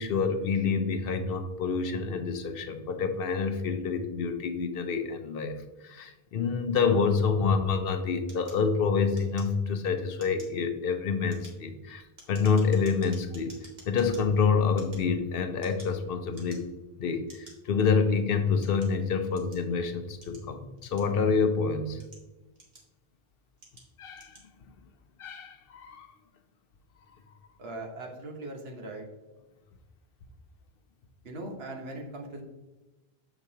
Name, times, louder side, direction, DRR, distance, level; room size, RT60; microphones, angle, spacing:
voice 1, 0.0-12.0 12.3-13.5 13.9-16.6 17.0-22.0 24.0-24.4 25.2-26.1, left 5 dB, 65° left, 8 dB, 0.8 m, -27 dB
sound 1, 8.3-9.8 10.1-10.6 11.1-14.2 14.7-16.0 16.3-16.8 17.3-17.5 18.2-19.7 20.2-21.4 21.8-23.1 23.6-23.9 24.1-24.5, right 1 dB, 45° right, 1.5 m, -52 dB
voice 2, 27.6-29.0 31.2-32.4, right 2 dB, 75° right, 1 dB, 1.3 m, -39 dB
6.9 x 4.8 x 2.8 m, 1.1 s
omnidirectional pair, 1.0 m